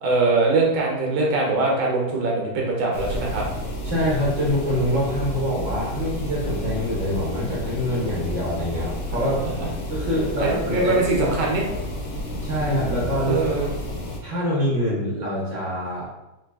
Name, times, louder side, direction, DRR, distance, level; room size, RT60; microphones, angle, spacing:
voice 1, 0.0-3.4 10.4-11.6 13.3-13.7, right 3 dB, 80° right, -1 dB, 1.5 m, -22 dB
sound 1, 2.9-14.2, left 1 dB, 80° left, 1.4 m, -31 dB
voice 2, 3.8-9.4 9.9-11.7 12.4-13.4 14.2-16.1, equal, 50° right, -5 dB, 0.9 m, -25 dB
3.9 x 3.2 x 2.3 m, 0.97 s
omnidirectional pair, 2.1 m